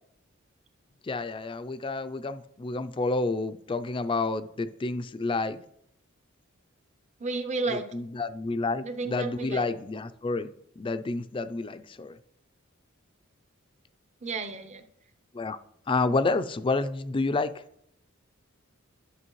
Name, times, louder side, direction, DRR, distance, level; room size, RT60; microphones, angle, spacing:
voice 1, 1.1-5.6 7.7-10.5 10.8-12.1 15.3-15.6 15.9-17.5, left 3 dB, 25° left, 12 dB, 0.4 m, -29 dB
voice 2, 7.2-7.9 8.8-9.7 14.2-14.8, right 3 dB, 35° right, 7 dB, 0.7 m, -32 dB
11.0 x 6.4 x 3.1 m, 0.72 s
head